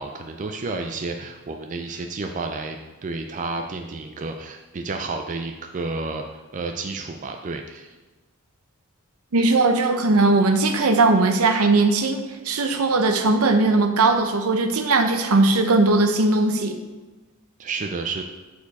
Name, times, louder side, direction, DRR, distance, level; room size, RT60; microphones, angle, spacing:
voice 1, 0.0-7.9 17.6-18.2, right 3 dB, 35° right, 4 dB, 0.4 m, -31 dB
voice 2, 9.3-12.2 12.4-16.7, right 3 dB, 70° right, 6 dB, 0.7 m, -19 dB
6.9 x 4.7 x 4.1 m, 1.2 s
head